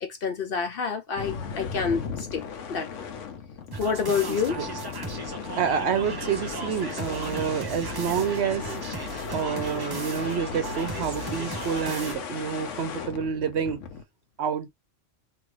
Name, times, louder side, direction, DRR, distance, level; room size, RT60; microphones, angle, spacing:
voice 1, 0.0-2.4 2.7-3.1 3.8-4.6, left 6 dB, 60° left, 0.7 m, -28 dB
sound 1, 1.2-14.0, left 6 dB, 75° left, 1.0 m, -36 dB
sound 2, 3.7-12.2, right 4 dB, 30° right, 0.4 m, -37 dB
voice 2, 4.3-4.7 5.6-8.7 9.3-13.8 14.4-14.7, right 7 dB, 65° right, 0.8 m, -28 dB
2.9 x 2.5 x 3.1 m
omnidirectional pair, 1.3 m